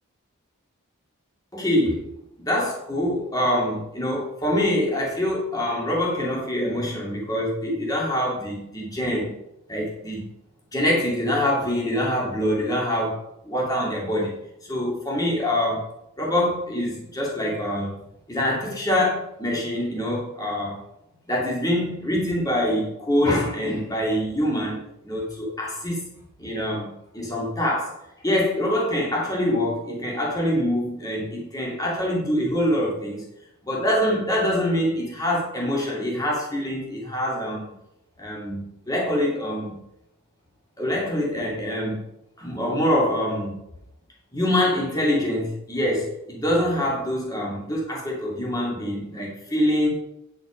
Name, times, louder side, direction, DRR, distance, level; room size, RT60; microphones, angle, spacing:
voice 1, 1.5-2.0 2.4-9.4 9.7-10.3 10.7-14.3 14.7-15.9 16.2-18.0 18.3-20.8 21.2-27.9 28.2-33.3 33.6-37.7 38.2-39.7 40.8-42.0 42.4-43.6 44.3-49.9, left 1 dB, 15° left, -4 dB, 2.5 m, -25 dB
9.5 x 6.2 x 5.1 m, 0.85 s
head